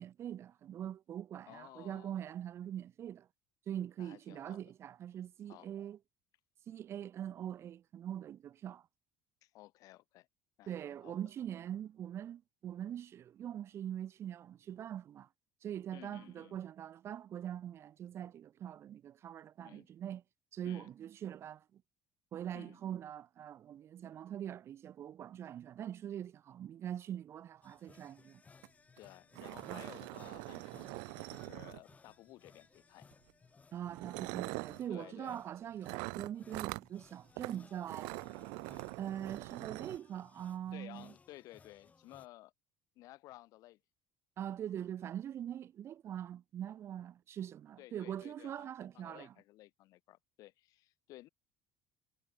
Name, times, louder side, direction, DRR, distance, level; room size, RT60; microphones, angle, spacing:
voice 1, 0.0-3.3 3.7-6.0 6.7-8.8 10.7-15.3 15.6-20.2 20.5-21.8 22.3-28.4 29.7-29.8 33.7-38.2 39.0-41.1 44.4-49.3, right 10 dB, 40° right, 0.6 m, -43 dB
voice 2, 1.5-2.2 4.0-4.6 5.5-5.7 9.4-10.3 10.6-11.2 15.9-16.6 19.6-19.9 20.6-20.9 22.5-22.8 29.0-33.1 34.9-35.4 40.7-42.5 42.9-43.8 47.8-51.3, left 17 dB, 65° left, 3.1 m, -55 dB
sound 1, 27.6-42.3, left 4 dB, 20° left, 3.4 m, -63 dB
sound 2, 28.6-28.7 29.0-29.1 29.3-32.1 33.1-33.3 33.9-34.8 35.8-36.9 37.4-37.6 37.8-40.0, right 36 dB, 85° right, 1.3 m, -43 dB
cardioid pair, 115°, 6 cm